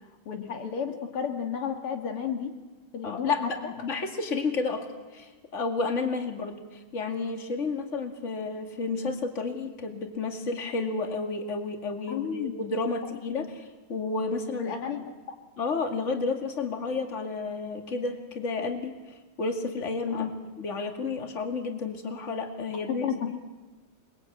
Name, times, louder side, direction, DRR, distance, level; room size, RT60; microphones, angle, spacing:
voice 1, 0.3-2.5 2.9-3.7 12.1-12.5 13.4-13.5 14.6-15.0 20.1-20.3 23.0-23.3, left 7 dB, 80° left, 4 dB, 2.8 m, -32 dB
voice 2, 3.0-4.9 5.1-14.7 15.6-23.4, left 4 dB, 35° left, 5 dB, 2.4 m, -31 dB
28.0 x 22.0 x 8.7 m, 1.3 s
omnidirectional pair, 2.4 m